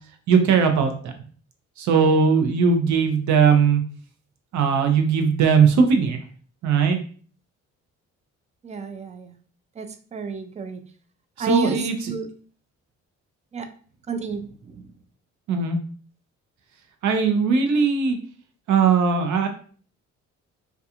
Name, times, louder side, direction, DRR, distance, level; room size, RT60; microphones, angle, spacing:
voice 1, 0.3-1.1 1.8-3.8 4.5-6.2 6.6-7.0 11.4-12.1 15.5-15.8 17.0-18.2 18.7-19.5, right 5 dB, 70° right, 5 dB, 0.6 m, -19 dB
voice 2, 8.6-9.3 9.8-10.8 11.4-12.3 13.5-13.7 14.1-14.9, right 5 dB, 25° right, 8 dB, 0.3 m, -30 dB
2.3 x 2.3 x 2.8 m, 0.44 s
cardioid pair, 90°, 30 cm